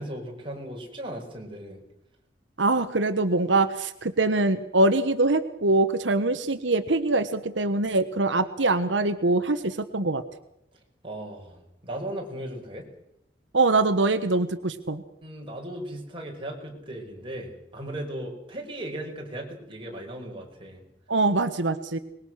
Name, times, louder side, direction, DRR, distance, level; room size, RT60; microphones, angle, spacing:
voice 1, 0.0-1.8 11.0-12.9 15.2-20.8, right 1 dB, 30° right, 0 dB, 5.8 m, -37 dB
voice 2, 2.6-10.2 13.5-15.0 21.1-22.0, right 2 dB, 90° right, 8 dB, 1.3 m, -23 dB
24.0 x 21.5 x 6.5 m, 0.81 s
head